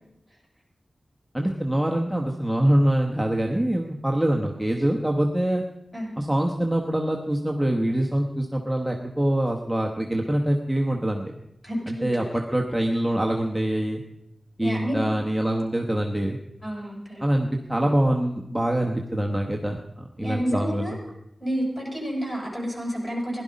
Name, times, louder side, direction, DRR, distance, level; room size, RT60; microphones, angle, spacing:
voice 1, 1.3-5.6 6.2-11.3 11.9-14.0 14.6-16.4 17.2-21.0, right 1 dB, 5° right, 0 dB, 1.2 m, -24 dB
voice 2, 11.6-12.3 14.6-15.0 16.6-17.2 20.2-21.0 21.4-23.4, equal, 25° left, -2 dB, 6.7 m, -30 dB
16.5 x 11.5 x 5.3 m, 0.82 s
wide cardioid pair, 80°, 0 cm